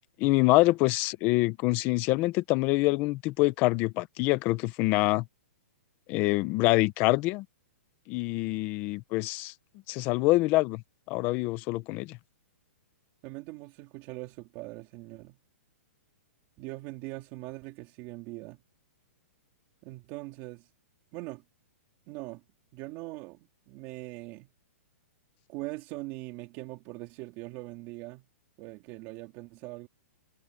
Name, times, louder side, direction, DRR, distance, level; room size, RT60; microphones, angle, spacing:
voice 1, 0.2-5.2 6.1-7.4 8.1-9.5 9.9-10.8 11.1-12.2, left 20 dB, 25° left, 0.8 m, -25 dB
voice 2, 13.2-15.4 16.6-18.6 19.8-20.7 21.1-21.4 22.1-22.4 22.7-23.4 23.7-24.5 25.5-28.3 28.6-29.9, right 21 dB, 25° right, 3.7 m, -41 dB
hypercardioid pair, 170°, 8 cm